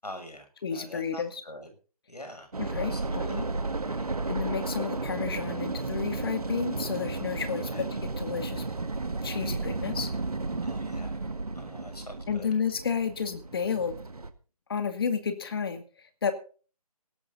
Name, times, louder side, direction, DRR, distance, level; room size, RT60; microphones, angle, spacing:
voice 1, 0.0-1.7 2.1-2.5 2.9-3.4 7.7-7.8 10.6-12.5, left 1 dB, 85° left, 6 dB, 6.7 m, -44 dB
voice 2, 0.6-1.3 2.6-3.4 4.3-7.9 8.2-8.6 9.2-10.1 12.3-14.0 14.7-15.8 16.2-16.3, left 6 dB, 40° left, 8 dB, 2.1 m, -31 dB
sound 1, 2.5-14.3, right 3 dB, 75° right, 1.9 m, -33 dB
17.5 x 13.0 x 3.9 m, 0.38 s
figure-of-eight pair, 155°, 20 cm